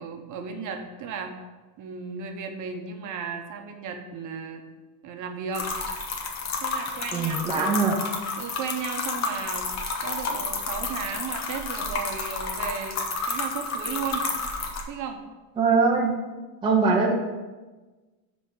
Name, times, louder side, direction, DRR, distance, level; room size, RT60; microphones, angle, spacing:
voice 1, 0.0-1.3 1.8-4.6 5.0-5.7 6.6-7.7 8.4-9.7 10.0-13.0 13.3-14.2 14.9-15.2 16.9-17.0, right 6 dB, 40° right, 5 dB, 1.0 m, -35 dB
sound 1, 5.5-14.8, left 4 dB, 35° left, 1.0 m, -31 dB
voice 2, 7.1-8.0 15.6-16.1 16.6-17.1, right 4 dB, 10° right, -1 dB, 0.7 m, -22 dB
5.7 x 5.2 x 6.5 m, 1.2 s
cardioid pair, 155°, 45 cm